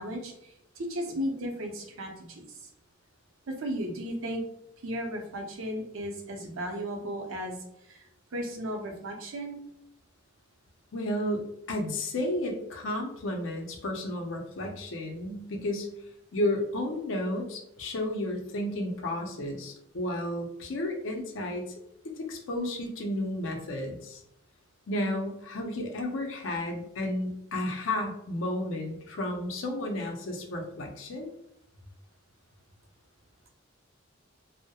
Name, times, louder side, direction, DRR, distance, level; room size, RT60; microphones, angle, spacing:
voice 1, 0.0-2.7 3.5-4.4 4.8-7.6 7.9-8.1 8.3-9.6, equal, 85° right, 3 dB, 0.6 m, -35 dB
voice 2, 10.9-15.9 16.3-21.6 22.0-24.2 24.9-31.3, left 1 dB, 65° left, 1 dB, 0.5 m, -32 dB
2.2 x 2.0 x 2.8 m, 0.78 s
head